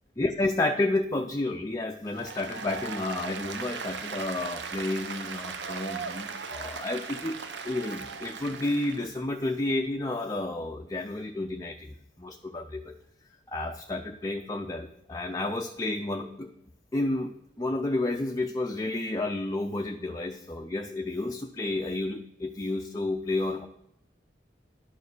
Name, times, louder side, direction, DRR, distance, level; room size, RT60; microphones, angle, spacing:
voice 1, 0.2-7.4 7.6-12.9 13.5-16.5 16.9-17.3 17.6-23.7, left 2 dB, 20° left, 3 dB, 0.5 m, -31 dB
Applause, 2.1-9.1, right 5 dB, 75° right, 0.9 m, -38 dB
11.0 x 6.8 x 6.8 m, 0.81 s
head